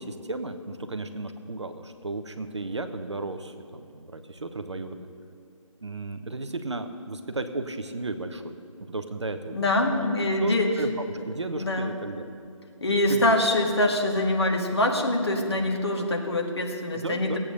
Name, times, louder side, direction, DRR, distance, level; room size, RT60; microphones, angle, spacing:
voice 1, 0.0-5.1 5.8-8.6 8.9-10.1 10.4-12.4 13.1-13.3 16.9-17.4, right 2 dB, 55° right, 8 dB, 1.0 m, -34 dB
voice 2, 9.5-10.7 11.6-11.9 12.8-17.4, left 1 dB, 50° left, 1 dB, 2.0 m, -24 dB
17.0 x 8.7 x 6.6 m, 2.4 s
figure-of-eight pair, 155°, 17 cm